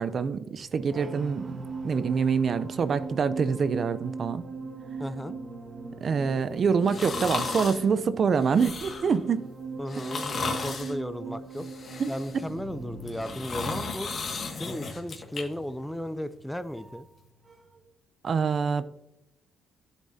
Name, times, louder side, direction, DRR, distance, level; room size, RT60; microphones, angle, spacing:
voice 1, 0.0-1.6 1.8-4.4 6.0-9.5 12.0-12.1 18.2-18.8, right 6 dB, 50° right, 13 dB, 0.5 m, -26 dB
sound 1, 0.6-17.2 17.5-17.8, right 4 dB, 35° right, 1.2 m, -40 dB
voice 2, 5.0-5.4 9.8-11.7 12.1-14.1 14.6-17.1, equal, 5° left, 12 dB, 0.5 m, -35 dB
sound 2, 6.8-7.8 8.4-9.2 9.9-10.9 11.5-12.5 13.0-15.4 15.8-15.9, left 4 dB, 50° left, 1.8 m, -34 dB
10.5 x 7.3 x 2.7 m, 0.85 s
cardioid pair, 90°, 0 cm